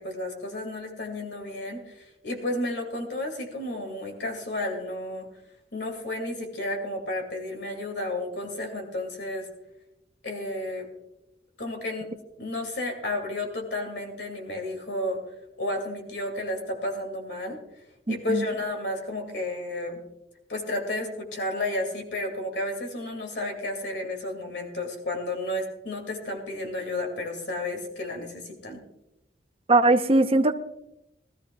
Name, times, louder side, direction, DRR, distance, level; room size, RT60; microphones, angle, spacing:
voice 1, 0.0-5.3 5.7-9.5 10.2-10.9 11.6-15.2 15.6-17.6 18.1-20.0 20.5-28.8, left 1 dB, 70° left, 3 dB, 2.4 m, -32 dB
voice 2, 18.1-18.4 29.7-30.5, right 2 dB, 35° right, 6 dB, 0.8 m, -20 dB
20.5 x 14.0 x 2.3 m, 0.90 s
head